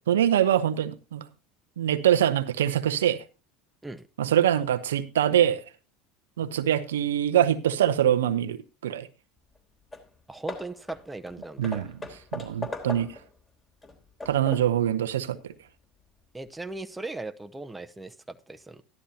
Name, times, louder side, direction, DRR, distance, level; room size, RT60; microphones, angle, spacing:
voice 1, 0.1-1.2 1.8-3.2 4.2-5.6 6.4-9.1 11.6-11.9 12.3-13.2 14.3-15.5, right 10 dB, 85° right, 0.7 m, -24 dB
Hammer / Wood, 9.5-9.6 9.9-10.1 10.5-13.3 13.8-14.8, left 2 dB, 25° left, 3.3 m, -39 dB
voice 2, 10.3-11.9 16.3-18.8, right 2 dB, 10° right, 0.8 m, -38 dB
13.5 x 11.5 x 2.8 m
hypercardioid pair, 80°, 0 cm